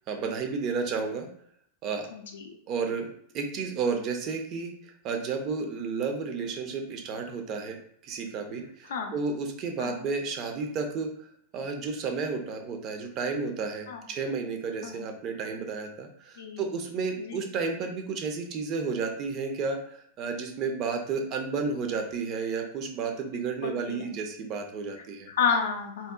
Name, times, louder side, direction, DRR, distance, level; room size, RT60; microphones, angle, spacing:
voice 1, 0.1-1.3 1.8-2.1 2.7-3.1 3.3-7.8 8.0-25.3, right 4 dB, 35° right, 4 dB, 0.4 m, -32 dB
voice 2, 2.1-2.5 8.9-9.1 9.8-10.0 13.9-14.0 14.8-15.1 16.4-16.6 17.2-17.4 23.6-24.1 25.3-26.1, left 6 dB, 60° left, 4 dB, 0.4 m, -31 dB
2.7 x 2.0 x 2.3 m, 0.65 s
figure-of-eight pair, 90°, 0 cm